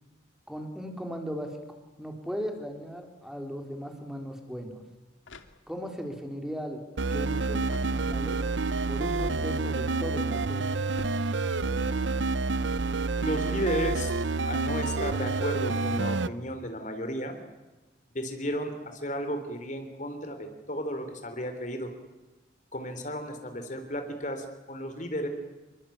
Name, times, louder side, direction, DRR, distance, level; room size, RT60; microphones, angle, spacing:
voice 1, 0.5-1.6 2.0-4.8 5.7-6.8 7.1-8.4 8.9-10.8, equal, 5° right, 4 dB, 4.2 m, -37 dB
sound 1, 5.2-6.1 7.6-8.5 10.9-11.9, left 2 dB, 90° left, 2.5 m, -50 dB
sound 2, 7.0-16.3, right 3 dB, 75° right, 0.9 m, -28 dB
voice 2, 13.2-17.4 18.1-21.9 22.7-25.3, equal, 40° left, 7 dB, 3.7 m, -34 dB
28.5 x 23.5 x 8.8 m, 1.1 s
head